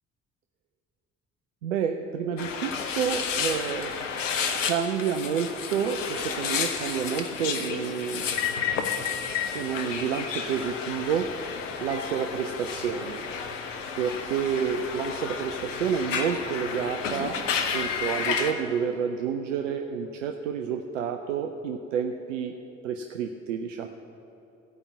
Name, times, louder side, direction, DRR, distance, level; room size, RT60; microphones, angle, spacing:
voice 1, 1.6-3.9 4.6-8.3 9.5-11.3 11.8-13.2 14.0-17.4 17.7-22.5 22.8-23.9, right 7 dB, 80° right, 5 dB, 0.5 m, -29 dB
sound 1, 2.4-18.5, left 6 dB, 75° left, 0.8 m, -31 dB
15.5 x 5.3 x 8.0 m, 3.0 s
figure-of-eight pair, 45°, 38 cm